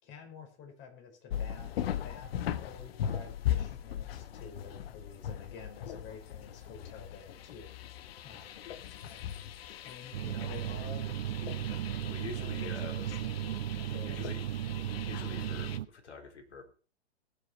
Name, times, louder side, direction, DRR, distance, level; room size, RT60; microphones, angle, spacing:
voice 1, 0.0-1.7 2.0-7.7 8.2-9.6 9.8-11.1 12.4-14.5, left 6 dB, 35° left, 3 dB, 5.2 m, -50 dB
sound 1, 1.3-15.8, left 10 dB, 60° left, 1.1 m, -39 dB
sound 2, 10.1-15.9, right 12 dB, 65° right, 0.7 m, -36 dB
voice 2, 12.1-13.2 14.0-14.4 15.0-16.7, left 4 dB, 80° left, 4 dB, 4.0 m, -45 dB
21.0 x 7.1 x 4.6 m, 0.37 s
hypercardioid pair, 120°, 34 cm